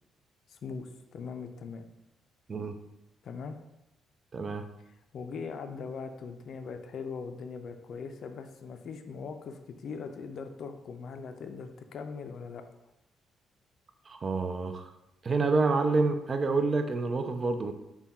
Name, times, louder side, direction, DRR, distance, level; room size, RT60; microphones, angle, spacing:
voice 1, 0.5-1.8 3.2-3.6 4.8-12.6, left 5 dB, 60° left, 7 dB, 0.4 m, -40 dB
voice 2, 4.3-4.6 14.1-14.9 15.2-17.7, right 3 dB, 40° right, 7 dB, 0.4 m, -28 dB
3.4 x 2.2 x 4.2 m, 0.91 s
cardioid pair, 90°, 0 cm